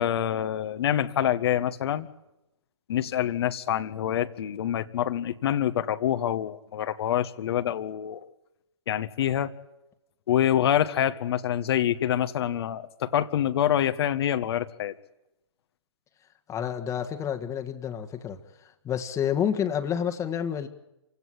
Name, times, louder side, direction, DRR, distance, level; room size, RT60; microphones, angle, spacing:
voice 1, 0.0-2.1 2.9-8.3 8.9-9.5 10.3-14.9, left 10 dB, 55° left, 9 dB, 1.6 m, -26 dB
voice 2, 16.5-18.4 18.8-20.7, left 8 dB, 20° left, 6 dB, 1.8 m, -29 dB
27.5 x 17.0 x 9.9 m, 0.92 s
figure-of-eight pair, 125°, 16 cm